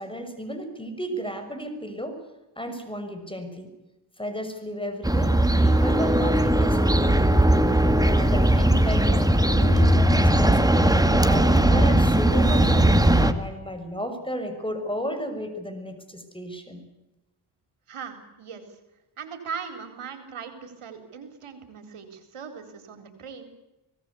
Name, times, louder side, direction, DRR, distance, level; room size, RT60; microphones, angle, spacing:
voice 1, 0.0-2.2 2.6-3.7 4.2-5.4 5.6-7.7 8.1-10.9 11.3-16.8, equal, 10° left, 8 dB, 6.2 m, -33 dB
sound 1, 5.0-13.3, right 1 dB, 5° right, 2.2 m, -19 dB
voice 2, 17.9-18.6 19.2-23.5, right 6 dB, 80° right, 7 dB, 4.1 m, -39 dB
25.5 x 18.5 x 8.5 m, 1.0 s
cardioid pair, 60°, 50 cm